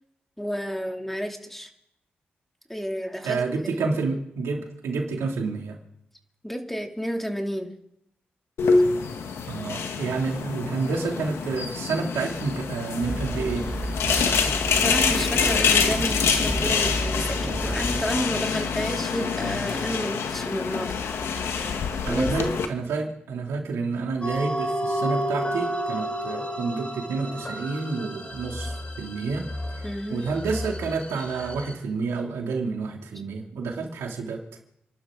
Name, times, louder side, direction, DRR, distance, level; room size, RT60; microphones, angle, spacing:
voice 1, 0.4-1.7 2.7-3.4 6.4-7.7 14.8-21.2 21.5-22.3 29.8-30.3, equal, 5° left, 3 dB, 2.7 m, -31 dB
voice 2, 3.2-5.8 9.5-13.7 22.1-29.5 29.7-34.4, right 4 dB, 90° right, 1 dB, 2.7 m, -29 dB
sound 1, 8.6-22.7, left 5 dB, 80° left, 1.4 m, -26 dB
sound 2, 13.0-18.1, right 1 dB, 20° right, 4.3 m, -31 dB
sound 3, 24.2-31.7, equal, 30° left, 3.4 m, -31 dB
30.0 x 12.0 x 3.9 m, 0.77 s
supercardioid pair, 50°, 4 cm